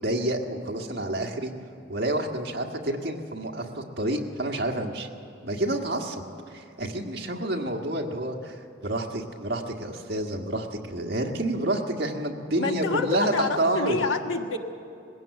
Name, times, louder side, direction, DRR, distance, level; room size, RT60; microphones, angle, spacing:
voice 1, 0.0-1.5 1.9-5.1 5.4-14.0, right 1 dB, 55° right, 2 dB, 1.6 m, -29 dB
voice 2, 12.6-14.6, left 4 dB, 85° left, 4 dB, 1.5 m, -27 dB
20.5 x 16.5 x 8.1 m, 2.6 s
head